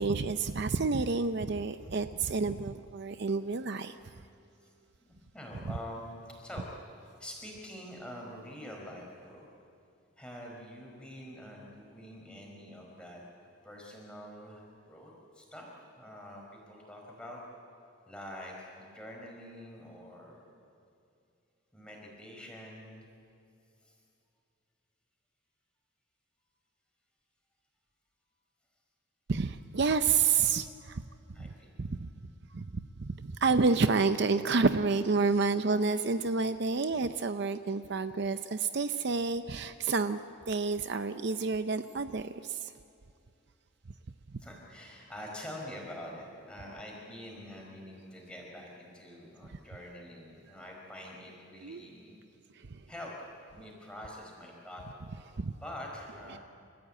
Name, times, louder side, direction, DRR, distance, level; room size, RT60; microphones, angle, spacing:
voice 1, 0.0-3.9 29.3-31.0 31.4-31.5 31.8-32.1 32.5-40.2 40.5-42.7 51.6-51.8 52.7-52.8 55.4-55.5 56.3-56.4, right 4 dB, 55° right, 10 dB, 0.6 m, -29 dB
voice 2, 5.3-6.7 7.2-9.4 10.2-13.2 13.6-17.4 18.1-20.4 21.7-23.1 23.8-24.0 31.3-31.8 44.4-52.1 52.9-54.8 55.5-56.4, left 1 dB, 5° left, -2 dB, 5.0 m, -46 dB
30.0 x 14.5 x 8.8 m, 2.6 s
head